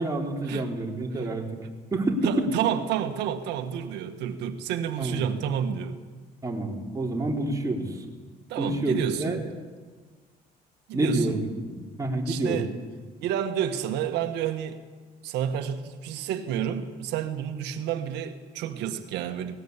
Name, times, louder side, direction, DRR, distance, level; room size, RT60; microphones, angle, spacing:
voice 1, 0.0-1.4 1.9-2.4 5.0-5.3 6.4-7.9 8.6-9.4 10.9-12.7, right 2 dB, 20° right, -1 dB, 4.0 m, -28 dB
voice 2, 2.2-6.0 8.5-9.4 10.9-11.4 12.3-12.7 13.2-14.8 15.2-19.6, right 9 dB, 85° right, 7 dB, 1.6 m, -30 dB
19.5 x 19.5 x 8.3 m, 1.4 s
cardioid pair, 110°, 17 cm